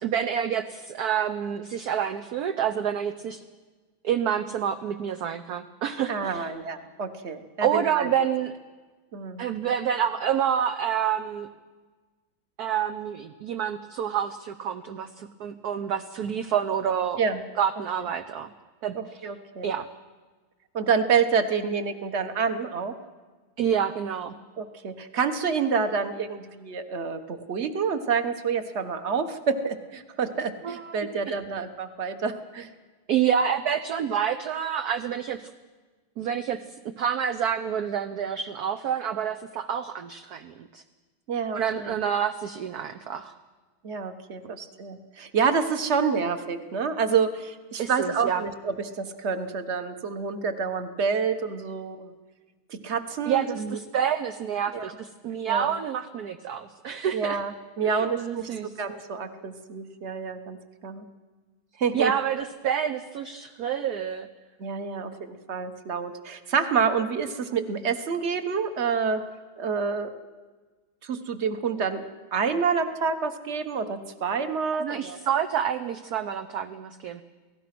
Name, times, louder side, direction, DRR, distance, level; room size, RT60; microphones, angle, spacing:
voice 1, 0.0-3.4 4.0-6.5 7.6-8.5 9.4-11.5 12.6-17.2 17.6-18.5 18.8-19.3 19.6-19.9 23.6-24.3 30.6-31.4 33.1-35.5 36.2-36.6 36.8-40.8 41.5-43.3 47.8-48.4 53.3-57.4 57.8-58.7 61.9-64.3 74.7-77.2, right 8 dB, 60° right, 8 dB, 1.1 m, -28 dB
voice 2, 6.1-8.1 9.1-9.4 17.2-17.4 18.9-19.7 20.7-22.9 24.6-32.7 41.3-41.9 43.8-52.1 52.7-53.8 54.7-54.9 55.5-55.7 57.1-61.0 61.8-62.1 64.6-69.2 69.6-70.2 71.0-72.0 72.3-75.2, right 5 dB, 35° right, 8 dB, 1.3 m, -28 dB
28.5 x 18.0 x 6.0 m, 1.3 s
omnidirectional pair, 2.3 m